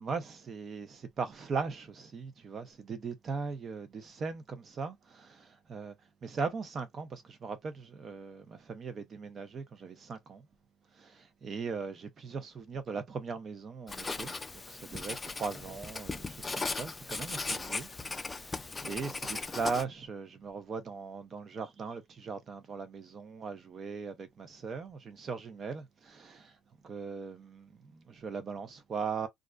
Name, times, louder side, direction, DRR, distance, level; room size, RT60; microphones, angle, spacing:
voice 1, 0.0-5.9 6.2-10.4 11.0-14.3 14.7-26.5 26.8-29.3, right 5 dB, 45° right, 0.7 m, -39 dB
Writing, 13.9-19.8, left 3 dB, 20° left, 0.4 m, -38 dB
2.4 x 2.1 x 2.4 m
cardioid pair, 95°, 0 cm